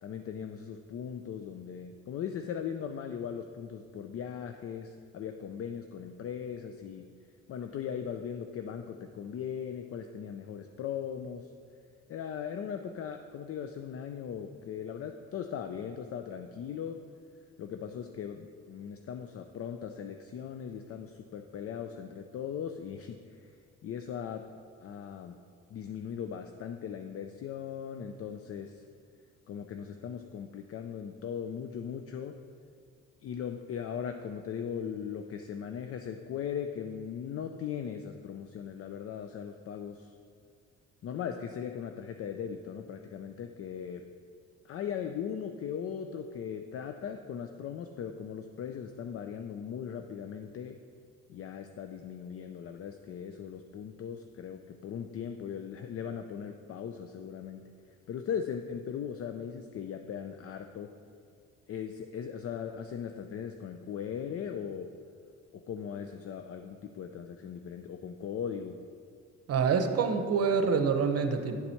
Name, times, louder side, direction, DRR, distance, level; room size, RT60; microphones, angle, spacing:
voice 1, 0.0-7.1 7.5-11.5 12.1-17.0 17.6-23.5 23.8-24.5 24.8-25.4 25.7-28.8 29.5-32.4 33.2-40.1 41.0-44.0 44.6-50.8 51.3-57.7 58.1-61.0 61.7-64.9 65.5-68.8, left 8 dB, 50° left, 6 dB, 0.4 m, -39 dB
voice 2, 69.5-71.6, right 5 dB, 55° right, 7 dB, 0.7 m, -26 dB
9.6 x 4.1 x 4.4 m, 2.2 s
cardioid pair, 90°, 30 cm